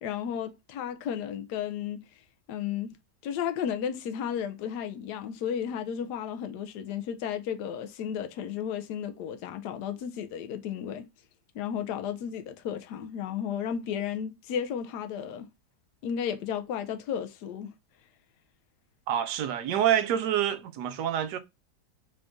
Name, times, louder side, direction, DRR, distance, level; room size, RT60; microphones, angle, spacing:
voice 1, 0.0-2.2 2.5-3.0 3.2-11.0 11.5-15.5 16.0-17.8, left 8 dB, 75° left, 1.1 m, -33 dB
voice 2, 19.1-21.4, right 10 dB, 75° right, 1.2 m, -27 dB
3.9 x 2.5 x 3.5 m
omnidirectional pair, 1.8 m